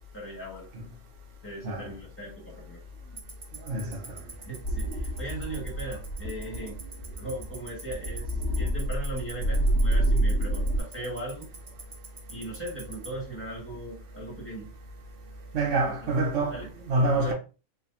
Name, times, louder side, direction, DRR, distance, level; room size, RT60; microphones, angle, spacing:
voice 1, 0.1-0.7 1.4-2.8 4.4-6.8 7.2-11.5 12.3-14.7 15.8-16.1 16.5-16.7 17.0-17.3, right 1 dB, 10° left, 1.6 m, -38 dB
Tick-tock, 3.2-13.1, right 5 dB, 30° right, 0.7 m, -42 dB
voice 2, 3.6-4.0 15.5-17.3, right 2 dB, 65° right, 1.2 m, -26 dB
sound 1, 4.6-10.8, right 1 dB, 55° left, 1.7 m, -28 dB
3.8 x 2.7 x 2.6 m
omnidirectional pair, 1.5 m